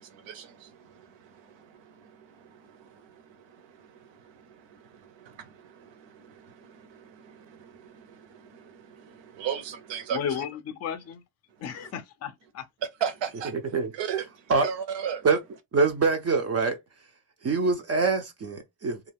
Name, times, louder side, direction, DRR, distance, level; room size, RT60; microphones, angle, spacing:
voice 1, 0.0-10.5 11.5-11.9 12.8-15.3, right 8 dB, 70° right, 0.8 m, -38 dB
voice 2, 10.1-11.2 11.6-12.6, left 8 dB, 40° left, 0.4 m, -34 dB
voice 3, 15.7-16.8 17.4-19.1, right 4 dB, 35° right, 0.4 m, -24 dB
2.3 x 2.3 x 3.3 m
cardioid pair, 145°, 45 cm